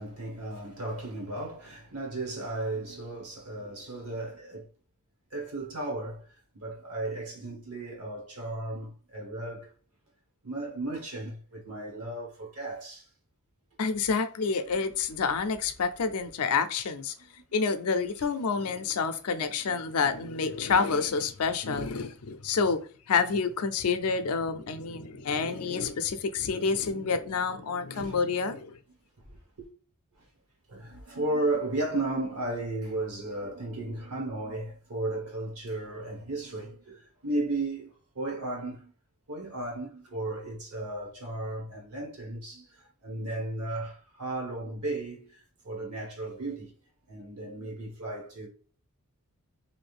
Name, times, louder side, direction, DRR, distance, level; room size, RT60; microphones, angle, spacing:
voice 1, 0.0-4.7 5.3-6.3 6.5-9.7 10.4-13.1 19.6-19.8 25.1-25.3 27.9-28.1 29.3-29.7 30.7-37.9 38.1-38.9 39.3-46.7 47.1-48.5, right 2 dB, 75° right, 1.4 m, -35 dB
voice 2, 13.8-17.1 17.5-22.8 23.1-28.8, left 5 dB, 70° left, 0.5 m, -28 dB
2.6 x 2.5 x 3.3 m
head